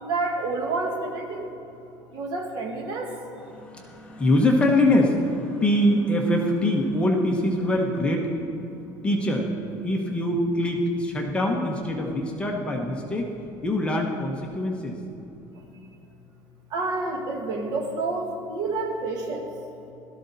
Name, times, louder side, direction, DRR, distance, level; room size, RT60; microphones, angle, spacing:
voice 1, 0.0-1.5 2.1-3.1 16.7-19.5, right 3 dB, 50° right, 3 dB, 1.7 m, -29 dB
voice 2, 3.4-8.6 9.0-9.5 9.8-13.3 13.6-15.0, left 1 dB, 15° left, 0 dB, 1.1 m, -24 dB
16.5 x 13.0 x 4.2 m, 2.9 s
cardioid pair, 170°, 9 cm